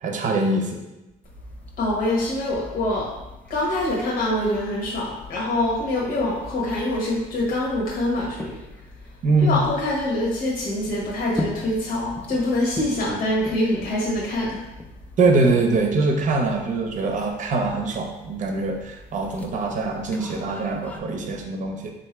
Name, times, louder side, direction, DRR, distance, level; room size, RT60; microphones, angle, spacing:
voice 1, 0.0-0.8 9.2-9.6 15.2-21.9, right 3 dB, 50° right, 3 dB, 0.7 m, -23 dB
sound 1, 1.2-21.0, left 1 dB, 10° left, 0.4 m, -41 dB
voice 2, 1.8-3.1 3.5-8.6 9.4-14.6, left 1 dB, 60° left, -5 dB, 1.1 m, -25 dB
3.6 x 2.7 x 4.3 m, 0.98 s
cardioid pair, 110°, 17 cm